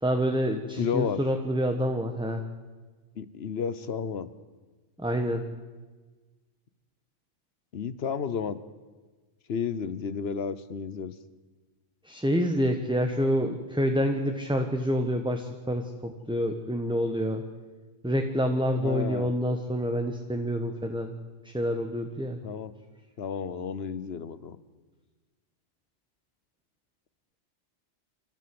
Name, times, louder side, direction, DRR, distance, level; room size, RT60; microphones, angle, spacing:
voice 1, 0.0-2.4 5.0-5.4 12.0-17.4 18.0-21.1 21.4-22.4, equal, 5° right, 4 dB, 1.1 m, -27 dB
voice 2, 0.8-1.2 3.2-4.3 7.7-8.6 9.5-11.1 18.8-19.3 22.4-22.7 23.2-24.6, left 6 dB, 55° left, 15 dB, 1.2 m, -32 dB
28.0 x 13.0 x 7.8 m, 1.3 s
omnidirectional pair, 1.3 m